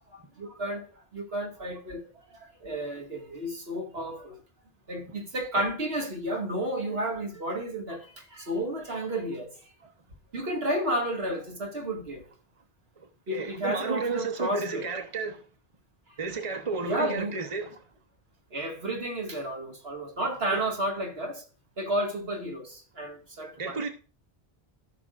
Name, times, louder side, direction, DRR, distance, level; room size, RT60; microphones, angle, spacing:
voice 1, 0.1-2.0 2.3-4.4 4.9-9.9 10.3-12.2 13.3-14.9 16.8-17.4 18.5-21.4 21.8-23.9, right 1 dB, 75° right, 2.2 m, -32 dB
voice 2, 13.3-15.4 16.2-17.7 20.5-20.6 23.6-23.9, right 4 dB, 30° right, 1.1 m, -32 dB
15.5 x 6.0 x 2.5 m
omnidirectional pair, 1.0 m